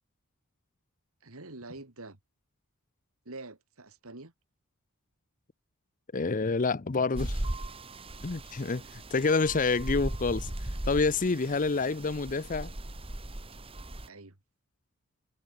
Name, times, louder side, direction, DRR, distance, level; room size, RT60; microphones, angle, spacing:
voice 1, 1.2-2.2 3.2-4.3 8.8-8.9 14.1-14.4, right 2 dB, 70° right, 2.6 m, -46 dB
voice 2, 6.1-7.4 8.2-10.5 10.9-12.7, left 4 dB, 35° left, 0.6 m, -28 dB
sound 1, 7.1-14.1, right 1 dB, 25° right, 1.5 m, -37 dB
head